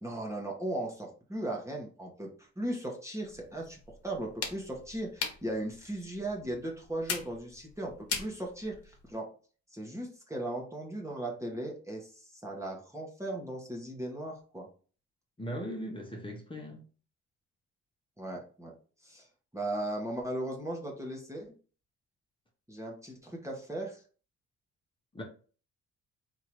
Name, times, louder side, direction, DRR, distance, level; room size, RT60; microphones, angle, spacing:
voice 1, 0.0-3.8 4.0-9.3 9.7-14.7 18.2-18.7 19.0-19.3 19.5-21.5 22.7-24.0, right 1 dB, 10° right, 1.4 m, -37 dB
sound 1, 3.2-9.1, left 5 dB, 50° left, 1.3 m, -41 dB
voice 2, 15.4-16.9 25.1-25.2, equal, 15° left, 1.3 m, -39 dB
3.6 x 2.9 x 4.6 m
cardioid pair, 90°, 30 cm